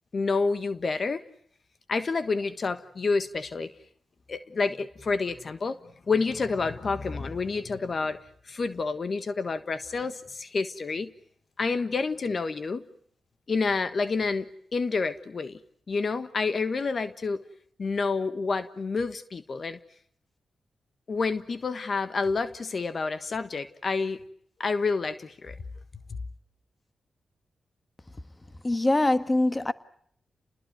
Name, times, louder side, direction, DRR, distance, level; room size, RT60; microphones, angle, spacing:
voice 1, 0.1-1.2 1.9-3.7 4.3-5.8 6.1-8.2 8.4-11.1 11.6-12.8 13.5-15.6 15.9-17.4 17.8-19.8 21.1-24.2 24.6-25.6, left 4 dB, 55° left, 1.3 m, -29 dB
voice 2, 28.6-29.7, left 2 dB, 25° left, 1.5 m, -23 dB
29.5 x 20.5 x 9.4 m
supercardioid pair, 45°, 0 cm